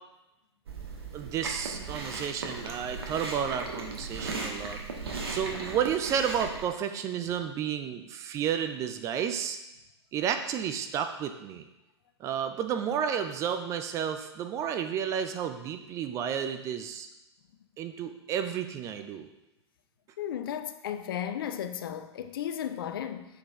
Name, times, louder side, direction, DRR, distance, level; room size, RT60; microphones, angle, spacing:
Chewing mastication, 0.7-6.7, right 3 dB, 60° right, 1.1 m, -37 dB
voice 1, 1.1-4.8 5.3-9.6 10.1-11.6 12.2-17.1 17.8-19.3, right 8 dB, 20° right, 0.4 m, -31 dB
voice 2, 20.2-23.3, left 9 dB, 50° left, 0.5 m, -34 dB
6.7 x 4.4 x 3.5 m
figure-of-eight pair, 105°, 15 cm